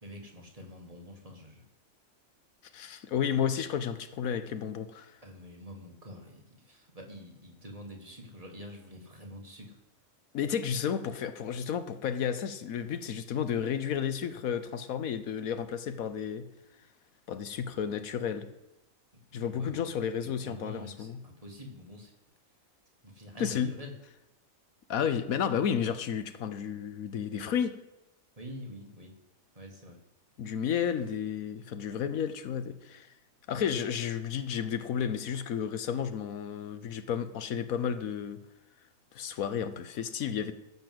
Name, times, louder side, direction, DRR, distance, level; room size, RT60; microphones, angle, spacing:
voice 1, 0.0-1.7 5.2-9.8 19.3-22.1 23.0-23.9 28.4-29.1 29.6-30.0, left 1 dB, 25° right, 1 dB, 1.9 m, -46 dB
voice 2, 2.7-5.2 10.3-16.5 17.3-18.5 19.3-21.2 23.4-23.7 24.9-27.7 30.4-33.1 33.5-38.4 39.1-40.5, left 8 dB, 75° left, 11 dB, 1.2 m, -32 dB
13.5 x 5.5 x 7.7 m, 0.97 s
omnidirectional pair, 1.5 m